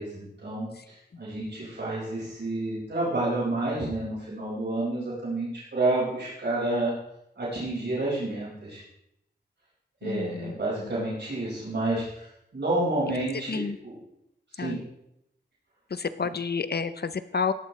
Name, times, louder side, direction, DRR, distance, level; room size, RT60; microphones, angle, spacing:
voice 1, 0.0-6.9 7.4-8.8 10.0-14.0 14.5-14.8, right 2 dB, 70° right, -8 dB, 5.4 m, -29 dB
voice 2, 10.0-10.5 13.5-13.8 14.6-14.7 16.2-17.5, left 5 dB, 60° left, 12 dB, 0.7 m, -29 dB
17.0 x 12.0 x 3.3 m, 0.82 s
wide cardioid pair, 75°, 18 cm